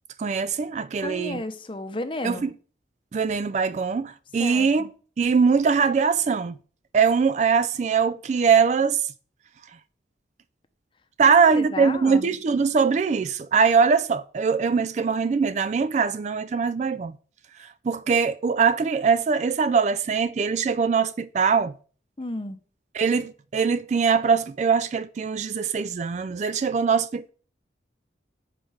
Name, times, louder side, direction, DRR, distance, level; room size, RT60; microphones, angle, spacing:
voice 1, 0.2-1.4 2.2-2.5 3.1-4.9 5.2-6.6 6.9-9.1 11.2-17.1 17.6-21.7 22.9-27.3, right 5 dB, 40° right, 0.3 m, -22 dB
voice 2, 1.0-2.5 4.4-4.9 11.5-12.3 22.2-22.6, left 2 dB, 30° left, 0.7 m, -33 dB
7.4 x 4.5 x 6.3 m
head